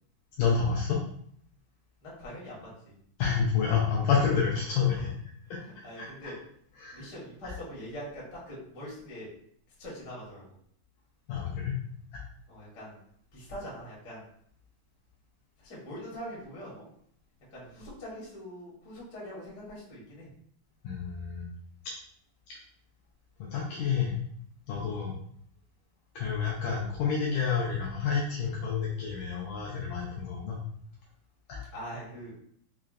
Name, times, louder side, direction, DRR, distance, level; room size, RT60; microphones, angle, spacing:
voice 1, 0.4-1.0 3.2-5.1 6.0-6.3 6.8-7.1 11.3-11.8 12.1-12.2 20.8-21.4 23.4-24.2 24.7-25.1 26.2-30.6 31.5-31.6, left 6 dB, 80° left, -3 dB, 1.9 m, -29 dB
voice 2, 2.0-2.9 4.6-5.1 5.5-6.3 6.9-9.3 9.8-10.4 12.5-13.0 13.3-14.2 15.6-16.9 17.5-20.3 31.7-32.3, equal, 55° left, -6 dB, 1.0 m, -43 dB
5.7 x 2.1 x 2.4 m, 0.65 s
omnidirectional pair, 4.2 m